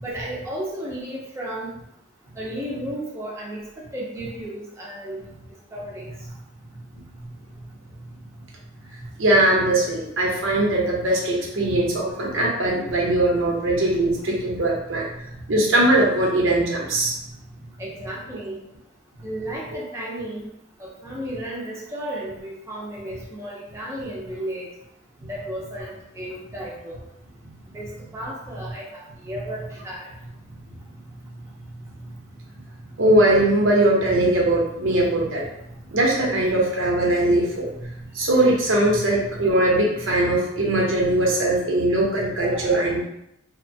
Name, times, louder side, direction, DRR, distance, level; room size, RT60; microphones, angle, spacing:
voice 1, 0.0-1.8 2.4-3.6 3.9-5.2 5.7-6.1 17.8-18.6 19.2-20.5 20.8-24.7 25.2-27.0 27.7-30.1, right 1 dB, 15° right, -4 dB, 0.4 m, -33 dB
voice 2, 9.2-15.1 15.5-17.1 33.0-35.4 35.9-37.9 38.1-43.0, right 1 dB, 85° right, -2 dB, 0.7 m, -20 dB
2.8 x 2.1 x 2.6 m, 0.80 s
head